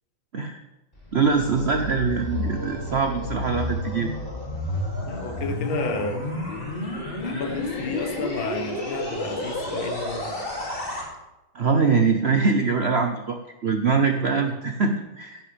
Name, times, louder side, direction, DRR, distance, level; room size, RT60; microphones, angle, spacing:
sound 1, 0.9-11.0, left 1 dB, 25° left, 2.8 m, -31 dB
voice 1, 1.1-4.1 11.5-13.4 13.6-15.4, right 5 dB, 75° right, 5 dB, 0.6 m, -23 dB
voice 2, 5.0-6.3 7.2-10.5 14.2-14.6, left 3 dB, 75° left, 6 dB, 2.0 m, -31 dB
16.0 x 10.5 x 3.4 m, 0.97 s
omnidirectional pair, 2.3 m